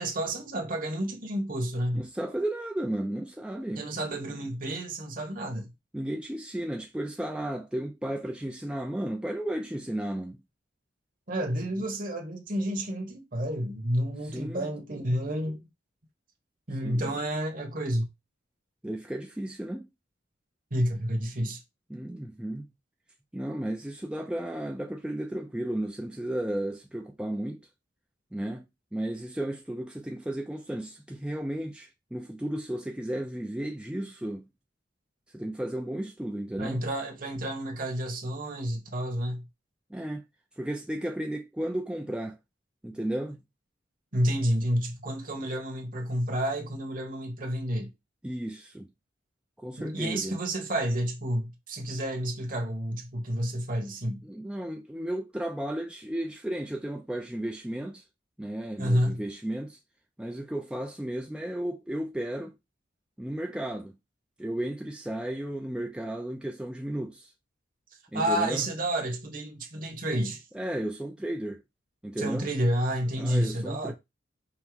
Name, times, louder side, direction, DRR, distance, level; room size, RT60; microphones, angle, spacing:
voice 1, 0.0-2.0 3.7-5.7 11.3-15.6 16.7-18.1 20.7-21.6 36.6-39.4 44.1-47.9 49.8-54.2 58.8-59.2 68.1-70.4 72.2-73.9, equal, 45° right, 1.3 m, -30 dB
voice 2, 1.9-3.8 5.9-10.4 14.3-14.7 16.8-17.0 18.8-19.9 21.9-22.7 23.3-27.6 28.3-28.6 28.9-34.4 35.3-36.8 39.9-40.2 40.6-42.4 42.8-43.4 48.2-48.9 49.6-50.4 54.2-58.0 58.4-59.8 60.2-62.5 63.2-64.0 64.4-67.3 68.1-68.7 70.5-71.6 72.0-72.5 73.2-73.9, right 1 dB, 5° right, 0.4 m, -34 dB
5.5 x 2.1 x 4.6 m
head